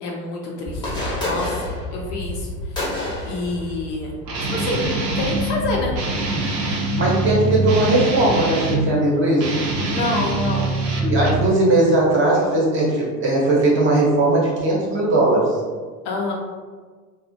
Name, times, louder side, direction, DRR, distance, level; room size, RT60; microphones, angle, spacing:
voice 1, 0.0-1.0 1.2-2.5 3.2-4.1 4.5-5.9 9.9-10.7 16.0-16.3, left 2 dB, 50° left, -1 dB, 0.5 m, -27 dB
sound 1, 0.7-6.0, left 1 dB, 10° left, 0.7 m, -29 dB
Guitar, 4.3-5.6 5.9-8.9 9.3-11.5, right 2 dB, 90° right, 0.6 m, -23 dB
voice 2, 7.0-9.5 11.0-15.6, right 2 dB, 25° right, -5 dB, 0.8 m, -18 dB
2.4 x 2.0 x 2.5 m, 1.5 s
hypercardioid pair, 90°, 49 cm